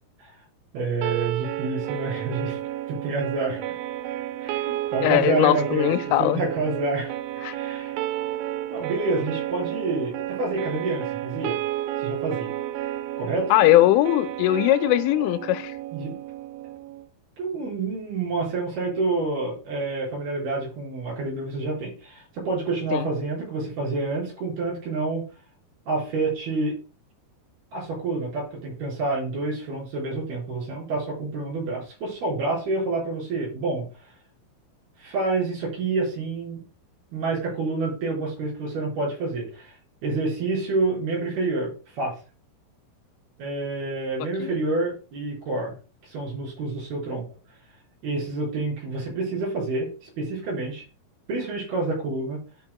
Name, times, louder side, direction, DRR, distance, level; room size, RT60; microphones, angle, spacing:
voice 1, 0.7-2.6 2.9-3.6 4.4-7.2 7.5-8.0 8.7-11.6 12.0-12.5 13.2-13.5 15.9-16.1 17.4-25.2 25.9-26.7 27.7-33.9 35.0-36.7 37.1-39.8 40.0-42.1 43.4-45.7 46.0-47.3 48.0-50.8 51.3-52.4, right 3 dB, 55° right, 6.5 m, -28 dB
sound 1, 1.0-17.1, right 13 dB, 80° right, 2.7 m, -32 dB
voice 2, 5.0-6.4 7.4-7.6 13.5-15.7 22.9-23.0 44.4-44.6, left 15 dB, 90° left, 3.1 m, -20 dB
13.5 x 5.9 x 2.2 m
omnidirectional pair, 5.5 m